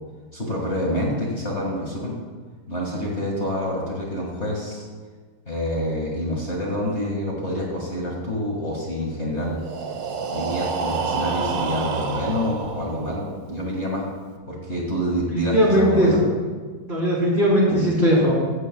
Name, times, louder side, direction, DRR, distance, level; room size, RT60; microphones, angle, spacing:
voice 1, 0.3-2.1 2.7-4.9 5.5-9.6 10.3-14.0 14.5-16.2, equal, 35° left, -3 dB, 2.1 m, -27 dB
Breathing, 9.5-13.4, right 5 dB, 70° right, 1.7 m, -28 dB
voice 2, 15.3-16.1 16.9-18.3, equal, 30° right, -6 dB, 4.3 m, -18 dB
16.0 x 14.0 x 2.3 m, 1.5 s
omnidirectional pair, 2.1 m